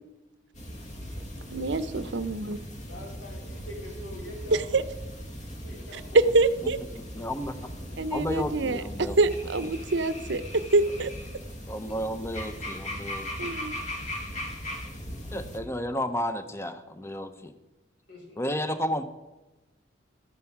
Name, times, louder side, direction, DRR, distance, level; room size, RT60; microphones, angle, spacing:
sound 1, 0.5-15.6, equal, 40° left, 2.0 m, -39 dB
voice 1, 1.5-2.6 4.7-4.8 6.3-6.8 8.0-8.8 9.2-10.4 10.7-11.1 13.4-13.7, right 3 dB, 65° right, 14 dB, 0.7 m, -25 dB
voice 2, 2.8-4.7 5.4-6.2 11.9-12.0 14.9-15.7 18.1-18.4, left 1 dB, 70° left, -1 dB, 4.5 m, -45 dB
voice 3, 7.1-7.5 8.1-9.2 11.7-13.5 15.3-17.5 18.4-19.0, equal, 15° left, 10 dB, 0.9 m, -32 dB
13.0 x 9.2 x 6.0 m, 1.1 s
head